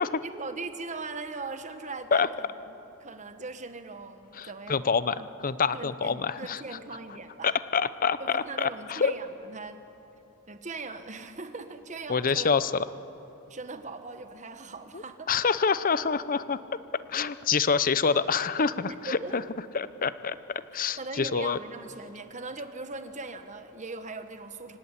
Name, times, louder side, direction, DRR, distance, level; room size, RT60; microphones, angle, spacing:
voice 1, 0.0-4.9 5.2-5.3 5.7-7.6 8.2-9.8 10.5-12.5 13.5-15.3 18.9-19.4 21.0-24.8, right 3 dB, 35° right, 8 dB, 1.3 m, -40 dB
voice 2, 4.3-6.6 7.4-9.1 12.1-12.7 14.9-16.6 16.9-19.4 19.7-20.4 20.7-21.6, left 5 dB, 40° left, 15 dB, 0.7 m, -26 dB
25.0 x 17.0 x 9.9 m, 3.0 s
head